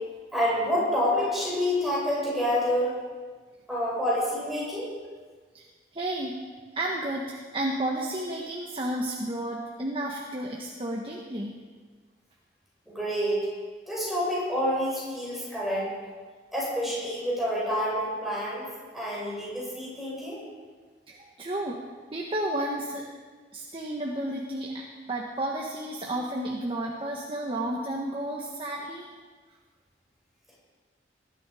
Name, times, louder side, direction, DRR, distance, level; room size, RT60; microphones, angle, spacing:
voice 1, 0.3-2.9 3.7-4.9 12.9-13.4 13.9-15.9 16.5-18.7 18.9-20.4, equal, ahead, -6 dB, 5.7 m, -28 dB
voice 2, 5.9-6.4 6.7-11.6 21.1-21.8 22.1-23.0 23.5-29.1, right 1 dB, 30° right, -1 dB, 1.4 m, -32 dB
20.0 x 12.0 x 5.0 m, 1.5 s
head